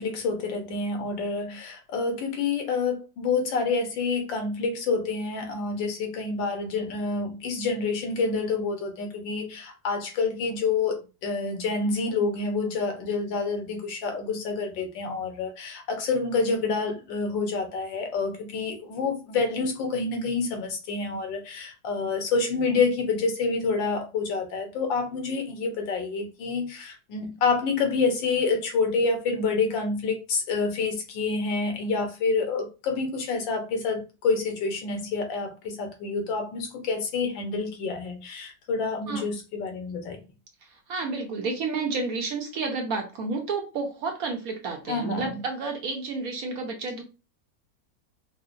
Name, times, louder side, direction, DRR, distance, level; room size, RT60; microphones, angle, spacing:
voice 1, 0.0-40.2 44.9-45.4, left 4 dB, 90° left, 1.6 m, -28 dB
voice 2, 39.1-39.4 40.6-47.0, right 4 dB, 60° right, 1.0 m, -31 dB
4.7 x 2.1 x 2.5 m
omnidirectional pair, 2.0 m